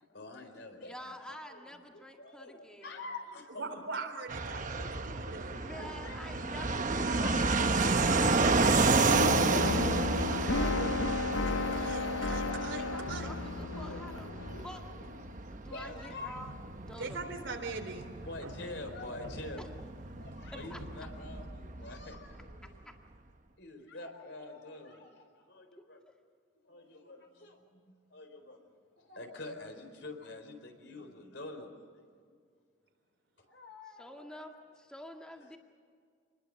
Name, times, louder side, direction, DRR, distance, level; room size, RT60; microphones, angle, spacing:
voice 1, 0.1-4.0 4.5-6.6 6.8-6.9 7.2-8.6 13.7-15.1 15.4-16.4 18.2-19.7 20.2-22.8 23.6-26.0 26.6-28.6 29.0-31.9 32.2-32.3 33.4-34.4, left 2 dB, 60° left, 5 dB, 4.2 m, -47 dB
voice 2, 0.8-3.0 5.5-9.0 12.6-14.3 14.6-14.8 15.5-16.5 16.8-17.3 19.6-19.7 20.7-21.1 22.6-23.0 25.8-26.2 34.0-35.6, equal, 5° left, 2 dB, 1.9 m, -48 dB
voice 3, 3.5-4.8 5.0-5.5 8.3-9.3 9.6-11.4 11.7-13.3 17.0-18.0, right 3 dB, 70° right, 4 dB, 3.4 m, -42 dB
Fixed-wing aircraft airplane, 4.3-22.7, right 3 dB, 40° right, 1.0 m, -31 dB
sound 1, 9.1-15.2, left 3 dB, 90° left, 1.0 m, -33 dB
sound 2, 15.8-22.3, equal, 90° right, 4.3 m, -53 dB
27.5 x 21.0 x 6.6 m, 2.1 s
head